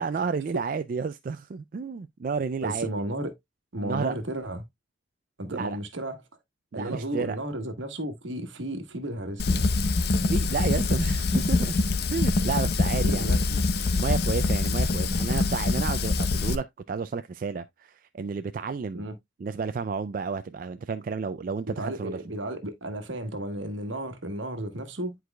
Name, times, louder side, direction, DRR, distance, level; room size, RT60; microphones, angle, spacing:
voice 1, 0.0-2.9 3.8-4.1 5.5-5.8 6.7-7.4 10.3-11.8 12.1-13.3 14.0-19.1 19.4-22.2, right 5 dB, 45° right, 0.3 m, -31 dB
voice 2, 2.6-3.3 3.7-4.6 5.4-6.2 6.7-9.7 13.0-13.6 18.9-19.2 21.7-25.2, right 1 dB, 75° right, 1.3 m, -33 dB
Fire, 9.4-16.5, left 3 dB, 55° left, 0.6 m, -24 dB
10.5 x 4.7 x 2.2 m
head